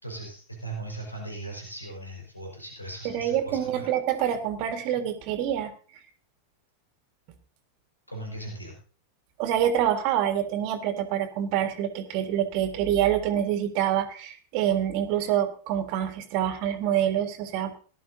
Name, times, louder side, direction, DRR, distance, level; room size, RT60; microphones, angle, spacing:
voice 1, 0.0-3.9 8.1-8.8, right 2 dB, 85° left, 0 dB, 4.8 m, -38 dB
voice 2, 3.0-5.7 9.4-17.7, right 10 dB, 45° right, 8 dB, 1.8 m, -26 dB
18.0 x 12.5 x 2.8 m, 0.38 s
figure-of-eight pair, 90°, 0 cm